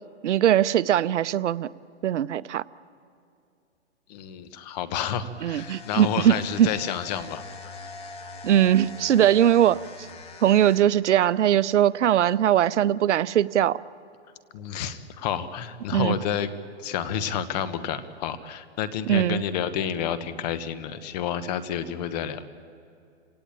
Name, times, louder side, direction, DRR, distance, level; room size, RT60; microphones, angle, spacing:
voice 1, 0.2-1.7 2.0-2.6 5.4-6.7 8.4-10.1 10.4-13.8 15.9-16.2 19.1-19.4, right 11 dB, 75° right, 18 dB, 0.7 m, -21 dB
voice 2, 4.1-7.5 14.5-16.5 16.8-22.4, left 9 dB, 35° left, 12 dB, 1.2 m, -30 dB
sound 1, 4.9-13.3, equal, ahead, 0.8 m, -49 dB
sound 2, 5.5-11.0, left 5 dB, 15° left, 1.4 m, -44 dB
28.5 x 17.5 x 8.8 m, 2.6 s
hypercardioid pair, 150°, 35 cm